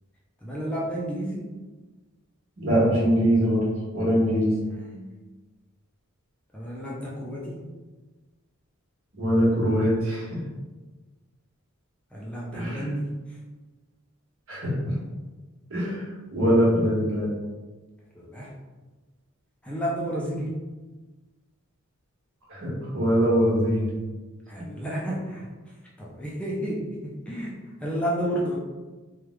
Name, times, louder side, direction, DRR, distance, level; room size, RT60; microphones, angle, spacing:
voice 1, 0.4-1.5 4.6-5.1 6.5-7.6 12.1-13.4 18.1-18.5 19.6-20.6 24.5-28.6, equal, 5° left, -5 dB, 0.5 m, -31 dB
voice 2, 2.6-3.6 3.9-4.6 9.2-10.4 12.5-12.8 14.5-15.0 15.7-17.3 22.5-23.9, equal, 65° right, -6 dB, 1.4 m, -23 dB
3.4 x 2.3 x 3.1 m, 1.2 s
head